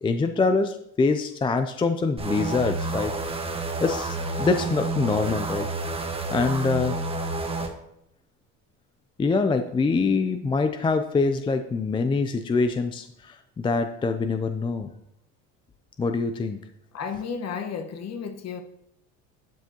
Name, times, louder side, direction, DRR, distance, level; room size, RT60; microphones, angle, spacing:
voice 1, 0.0-3.1 3.8-5.7 6.3-7.0 9.2-14.9 16.0-16.6, left 4 dB, 15° left, 7 dB, 0.4 m, -24 dB
sound 1, 2.2-7.7, right 2 dB, 15° right, 1.3 m, -29 dB
voice 2, 16.9-18.6, left 6 dB, 45° left, 7 dB, 1.3 m, -33 dB
12.0 x 8.0 x 2.9 m, 0.78 s
supercardioid pair, 110°, 37 cm